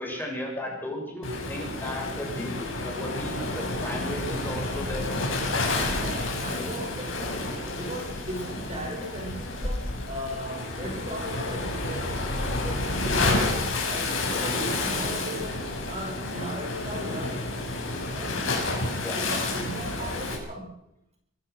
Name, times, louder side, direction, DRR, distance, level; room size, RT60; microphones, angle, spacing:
voice 1, 0.0-5.1 19.0-19.2, left 1 dB, 10° left, -1 dB, 7.0 m, -35 dB
Waves surf, 1.2-20.4, left 2 dB, 80° left, 6.9 m, -30 dB
voice 2, 5.9-13.5 13.8-17.8 18.1-18.4 19.2-20.7, equal, 35° right, 0 dB, 6.2 m, -37 dB
25.0 x 16.5 x 6.4 m, 0.80 s
head